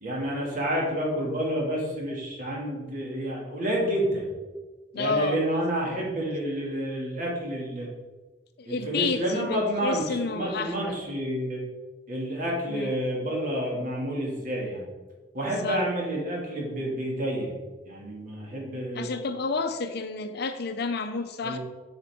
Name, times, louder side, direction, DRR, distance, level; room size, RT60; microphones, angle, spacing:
voice 1, 0.0-4.3 4.9-7.9 8.6-11.6 12.1-14.8 15.3-17.5 17.9-19.1 21.4-21.6, equal, 50° right, -3 dB, 2.2 m, -29 dB
voice 2, 4.9-5.4 8.6-11.0 12.7-12.9 15.6-15.8 18.9-21.6, left 4 dB, 60° left, 9 dB, 0.6 m, -30 dB
9.0 x 5.6 x 3.6 m, 1.3 s
head